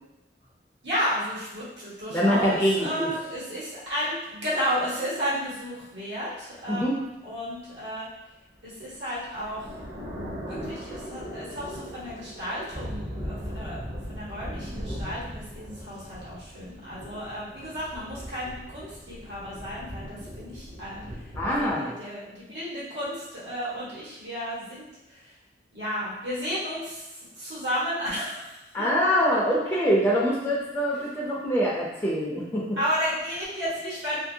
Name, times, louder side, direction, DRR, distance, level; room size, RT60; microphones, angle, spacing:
voice 1, 0.8-8.1 8.6-9.8 10.4-25.3 25.7-28.6 30.9-31.1 32.8-34.2, equal, 75° right, -9 dB, 1.3 m, -33 dB
voice 2, 2.1-3.1 6.7-7.0 21.4-21.9 28.7-32.7, equal, 10° left, -6 dB, 0.4 m, -24 dB
sound 1, 8.6-21.7, equal, 35° right, 0.7 m, -39 dB
2.6 x 2.6 x 2.7 m, 0.98 s
head